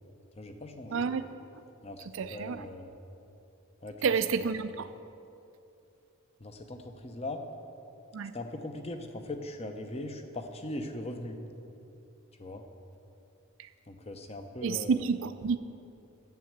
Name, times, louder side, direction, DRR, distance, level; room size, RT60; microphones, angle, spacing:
voice 1, 0.4-1.1 1.8-2.9 3.8-4.5 6.4-7.4 8.3-11.4 12.3-12.6 13.9-15.1, left 1 dB, 30° left, 6 dB, 0.8 m, -40 dB
voice 2, 0.9-1.2 2.2-2.6 4.0-4.7 8.1-8.3 13.6-13.7 14.6-15.6, right 5 dB, 60° right, 11 dB, 0.4 m, -29 dB
9.4 x 8.1 x 7.4 m, 2.7 s
head